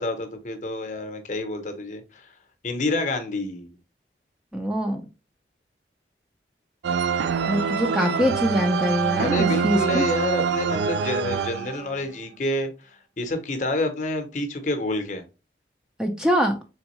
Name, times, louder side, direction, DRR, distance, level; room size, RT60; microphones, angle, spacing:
voice 1, 0.0-2.3 2.6-3.7 9.1-15.2, left 1 dB, 45° left, 0.7 m, -28 dB
voice 2, 4.5-5.0 7.5-10.1 16.0-16.6, equal, 5° right, 0.4 m, -23 dB
sound 1, 6.8-12.1, right 6 dB, 90° right, 0.3 m, -25 dB
3.5 x 3.5 x 3.0 m
head